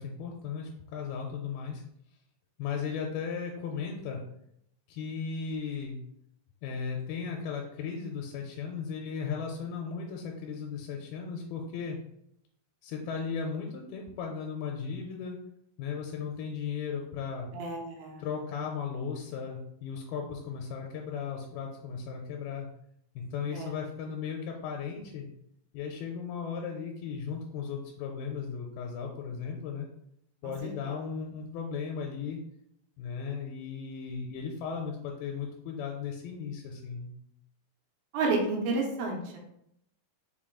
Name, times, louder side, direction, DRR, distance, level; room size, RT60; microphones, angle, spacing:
voice 1, 0.0-1.8 2.6-4.2 4.9-6.0 6.6-12.0 12.8-15.4 15.8-17.5 18.2-22.7 23.2-25.3 25.7-29.9 30.4-32.4 33.0-37.1, left 6 dB, 85° left, 1 dB, 2.4 m, -36 dB
voice 2, 17.5-18.2 23.5-23.7 38.1-39.4, right 3 dB, 80° right, 0 dB, 2.7 m, -30 dB
5.9 x 3.6 x 2.3 m, 0.75 s
omnidirectional pair, 4.4 m